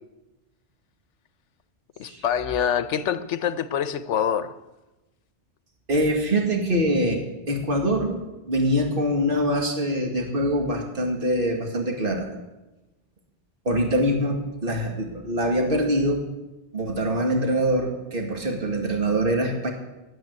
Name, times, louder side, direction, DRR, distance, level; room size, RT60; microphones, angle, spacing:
voice 1, 2.0-4.5, left 8 dB, 80° left, 13 dB, 1.1 m, -25 dB
voice 2, 5.9-8.2 8.5-12.3 13.7-16.2 16.7-19.7, equal, 50° right, 1 dB, 2.1 m, -24 dB
11.0 x 9.2 x 9.4 m, 1.0 s
omnidirectional pair, 1.2 m